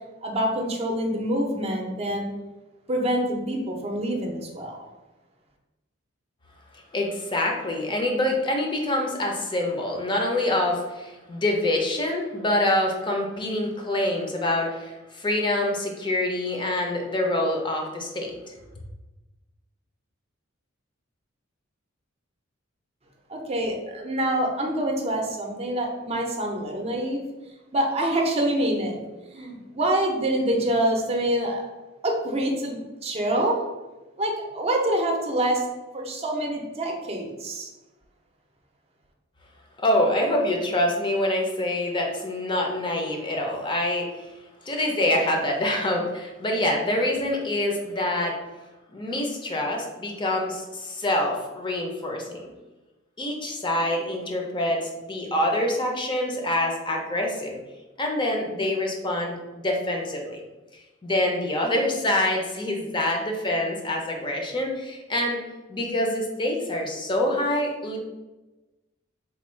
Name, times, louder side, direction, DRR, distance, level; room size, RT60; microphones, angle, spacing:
voice 1, 0.2-2.3 2.9-4.8 23.3-27.2 27.7-29.0 29.3-31.7 32.0-33.6 34.2-35.6 35.9-37.7, right 1 dB, 30° right, 1 dB, 0.6 m, -26 dB
voice 2, 6.9-18.5 39.8-44.3 44.6-48.4 48.9-52.5 53.2-57.6 58.0-60.4 61.0-65.4 65.7-68.0, left 1 dB, 25° left, 1 dB, 0.5 m, -26 dB
3.4 x 2.3 x 4.3 m, 1.1 s
head